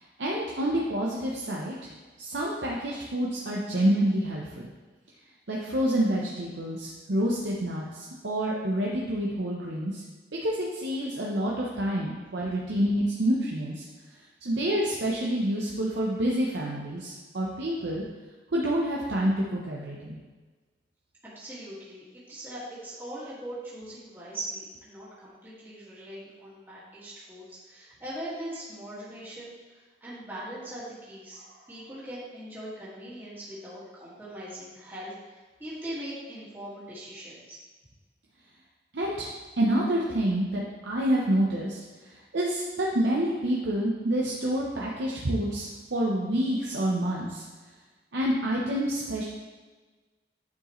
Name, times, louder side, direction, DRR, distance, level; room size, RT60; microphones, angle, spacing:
voice 1, 0.2-1.8 2.2-4.7 5.5-9.9 10.4-13.8 14.4-18.0 18.5-20.2 38.9-39.3 39.6-41.8 42.3-47.4 48.1-49.2, right 1 dB, 85° right, -3 dB, 0.8 m, -28 dB
voice 2, 21.4-31.4 31.7-37.6, right 1 dB, 10° right, -10 dB, 1.9 m, -41 dB
9.5 x 4.8 x 3.1 m, 1.3 s
head